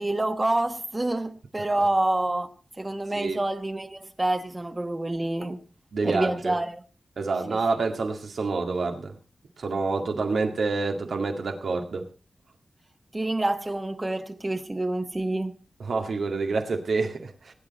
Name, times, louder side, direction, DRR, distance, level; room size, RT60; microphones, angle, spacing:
voice 1, 0.0-2.5 2.8-5.6 6.0-6.8 7.5-7.6 13.1-15.5, right 1 dB, 20° right, 1.3 m, -27 dB
voice 2, 5.9-6.5 7.2-9.1 9.6-12.1 15.8-17.5, right 4 dB, 80° right, 2.0 m, -27 dB
19.0 x 9.6 x 4.2 m
wide cardioid pair, 100°, 0 cm